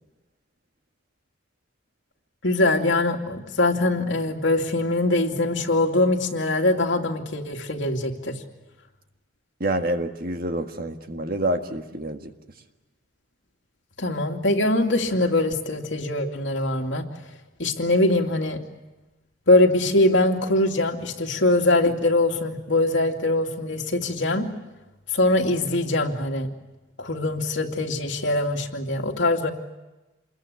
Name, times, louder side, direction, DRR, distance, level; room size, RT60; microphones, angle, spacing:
voice 1, 2.4-8.4 14.0-17.1 17.6-18.6 19.5-24.5 25.1-26.5 27.0-29.5, left 2 dB, 80° left, 3 dB, 2.6 m, -22 dB
voice 2, 9.6-12.3, right 1 dB, 50° right, 6 dB, 1.8 m, -27 dB
28.0 x 21.5 x 8.5 m, 1.1 s
head